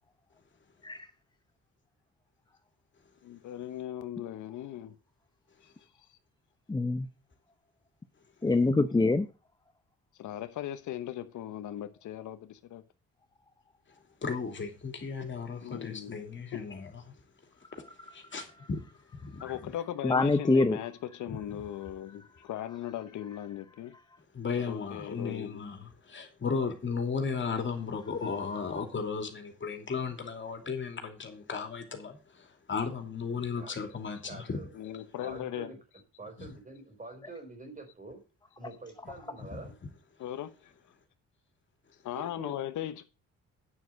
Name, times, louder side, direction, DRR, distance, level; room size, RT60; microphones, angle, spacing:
voice 1, 3.2-4.9 5.6-5.7 10.2-12.8 15.6-16.1 19.4-23.9 24.7-25.6 34.7-35.7 40.2-40.7 42.0-43.0, left 12 dB, 75° left, 1.0 m, -38 dB
voice 2, 6.7-7.1 8.4-9.3 20.0-20.8, left 3 dB, 15° left, 0.7 m, -24 dB
voice 3, 14.2-16.9 17.7-17.8 18.1-18.8 19.2-19.6 21.3-21.4 24.3-34.6 36.4-36.5 39.5-39.6, left 5 dB, 40° left, 2.9 m, -35 dB
voice 4, 33.6-34.0 34.3-34.7 35.2-35.8 36.2-38.2 38.6-39.7 42.1-42.6, right 2 dB, 25° right, 4.4 m, -46 dB
9.5 x 6.4 x 6.2 m
cardioid pair, 90°, 30 cm